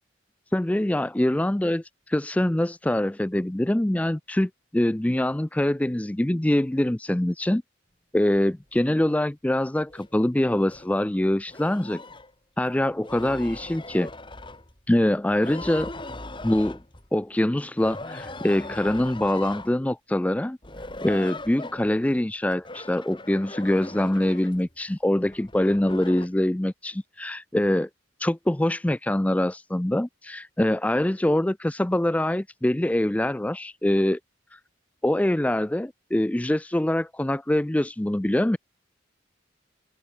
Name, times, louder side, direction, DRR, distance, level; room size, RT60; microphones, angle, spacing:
voice 1, 0.5-7.6 8.1-12.0 12.6-14.1 14.9-15.9 16.4-16.8 17.1-20.6 21.0-27.9 28.2-34.2 34.5-34.6 35.0-38.6, left 1 dB, 5° left, 0.4 m, -24 dB
sound 1, 8.8-9.0 9.9-10.1 10.6-10.9 11.3-12.3 12.9-14.9 15.3-17.2 17.8-19.8 20.6-22.1 22.5-24.7 25.3-26.3, left 2 dB, 25° left, 3.7 m, -40 dB
head